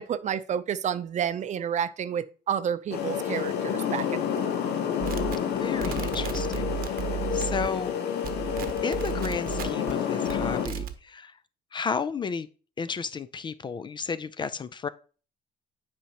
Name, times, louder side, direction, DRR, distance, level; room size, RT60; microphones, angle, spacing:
voice 1, 0.0-4.5, right 8 dB, 45° right, 0.5 m, -30 dB
sound 1, 2.9-10.7, left 8 dB, 75° left, 0.9 m, -29 dB
sound 2, 5.0-7.9 8.2-9.9 10.3-10.9, right 10 dB, 60° right, 0.9 m, -34 dB
voice 2, 5.6-6.7 7.3-7.9 8.8-11.3 11.7-12.5 12.8-14.9, left 5 dB, 30° left, 0.3 m, -32 dB
8.3 x 5.0 x 2.9 m
cardioid pair, 110°, 17 cm